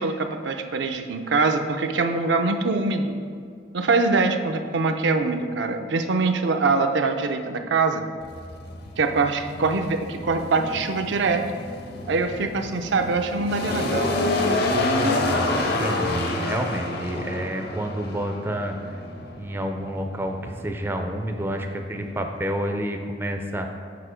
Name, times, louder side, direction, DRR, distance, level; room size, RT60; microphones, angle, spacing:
voice 1, 0.0-3.2 3.7-8.1 9.0-11.5 12.1-14.2, right 3 dB, 70° right, 6 dB, 0.5 m, -23 dB
sound 1, 8.2-22.7, left 2 dB, 60° left, 0.7 m, -28 dB
voice 2, 15.2-19.0 19.4-23.7, right 1 dB, 15° right, 4 dB, 0.4 m, -29 dB
6.7 x 4.4 x 5.0 m, 2.2 s
head